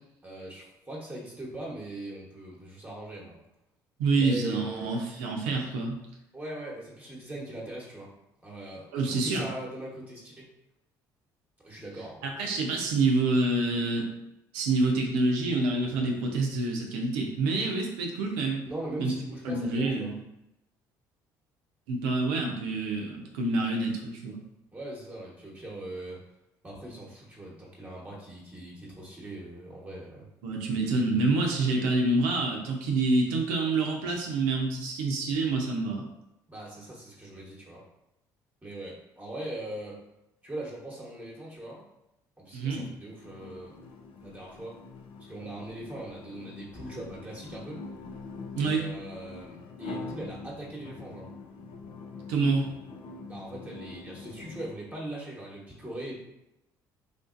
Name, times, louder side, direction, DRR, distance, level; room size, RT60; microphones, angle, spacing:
voice 1, 0.2-3.4 4.1-5.0 6.3-8.1 8.4-10.5 11.6-12.2 18.6-20.1 24.7-26.2 26.6-30.3 36.5-37.8 38.6-40.0 40.4-41.8 42.4-43.7 44.2-44.8 45.3-47.8 48.6-51.3 53.3-56.2, right 1 dB, 15° right, -4 dB, 1.1 m, -40 dB
voice 2, 4.0-6.0 8.9-9.5 12.2-14.1 14.5-18.6 19.0-19.1 19.4-20.1 21.9-24.4 30.4-36.1 42.5-42.9 48.6-48.8 52.3-52.7, right 3 dB, 80° right, 1 dB, 0.6 m, -27 dB
sound 1, 43.1-54.7, left 3 dB, 65° left, 0.4 m, -44 dB
3.6 x 2.6 x 2.5 m, 0.86 s
hypercardioid pair, 65°, 10 cm